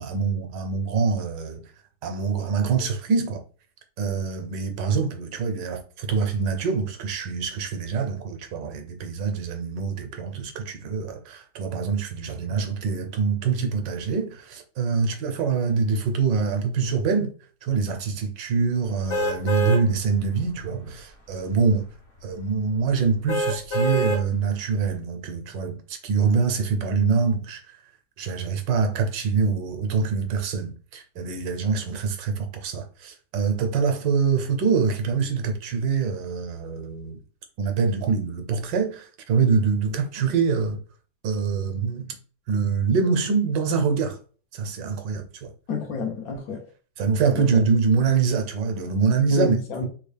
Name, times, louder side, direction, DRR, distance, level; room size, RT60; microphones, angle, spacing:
voice 1, 0.0-1.7 2.0-3.4 4.0-17.3 17.6-21.9 22.2-27.8 28.2-37.2 37.6-40.8 41.2-42.1 42.5-44.2 44.5-45.5 47.0-49.6, right 5 dB, 85° right, 1.3 m, -25 dB
sound 1, 19.1-19.8 20.4-20.5 23.3-24.2 24.8-24.9, right 1 dB, 55° left, 0.6 m, -25 dB
voice 2, 45.7-46.6 47.3-47.6 49.3-49.9, left 3 dB, 70° left, 1.0 m, -28 dB
3.4 x 2.4 x 3.3 m
omnidirectional pair, 1.9 m